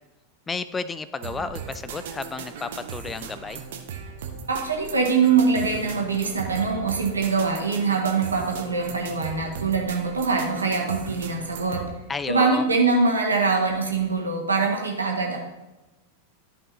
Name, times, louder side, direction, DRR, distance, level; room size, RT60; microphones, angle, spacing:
voice 1, 0.5-3.6 12.1-12.6, left 4 dB, 15° left, 14 dB, 0.3 m, -32 dB
sound 1, 1.2-11.9, right 6 dB, 55° right, 0.9 m, -37 dB
voice 2, 4.5-11.8 12.3-15.4, right 4 dB, 75° right, 0 dB, 1.6 m, -23 dB
13.0 x 5.4 x 2.9 m, 1.1 s
figure-of-eight pair, 90°, 0 cm